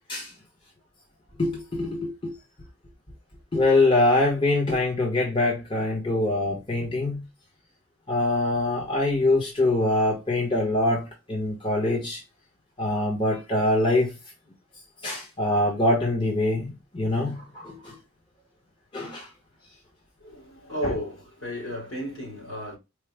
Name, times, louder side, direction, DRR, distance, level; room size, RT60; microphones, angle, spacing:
voice 1, 1.4-2.3 3.5-7.2 8.1-12.2 12.8-14.1 15.0-17.9 18.9-19.3 20.8-20.9, left 2 dB, 25° left, 0.9 m, -24 dB
voice 2, 20.2-22.8, equal, 65° left, 2.1 m, -33 dB
4.6 x 2.0 x 3.3 m
head